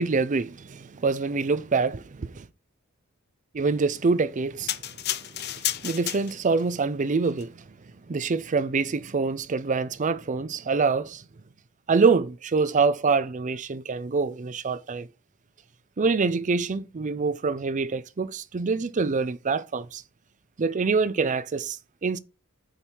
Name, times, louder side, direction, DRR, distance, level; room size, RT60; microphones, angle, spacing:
voice 1, 0.0-2.5 3.5-4.8 5.2-5.3 5.5-7.6 8.1-11.2 11.9-15.1 16.0-20.0 20.6-22.2, right 4 dB, 35° right, 0.5 m, -25 dB
sound 1, 4.7-6.6 7.3-7.4, left 13 dB, 50° left, 0.6 m, -31 dB
6.5 x 4.6 x 5.9 m
head